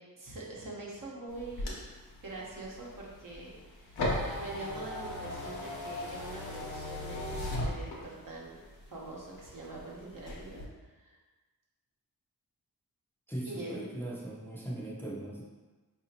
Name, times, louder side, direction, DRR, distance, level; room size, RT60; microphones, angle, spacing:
voice 1, 0.2-1.8 2.2-11.2 13.4-13.8, right 2 dB, 60° right, -4 dB, 1.0 m, -44 dB
sound 1, 1.3-8.4 8.8-9.8 10.2-10.6, left 1 dB, 90° left, 0.9 m, -37 dB
voice 2, 13.3-15.4, right 1 dB, 5° left, -5 dB, 0.6 m, -39 dB
4.7 x 2.8 x 2.8 m, 1.3 s
wide cardioid pair, 75°, 38 cm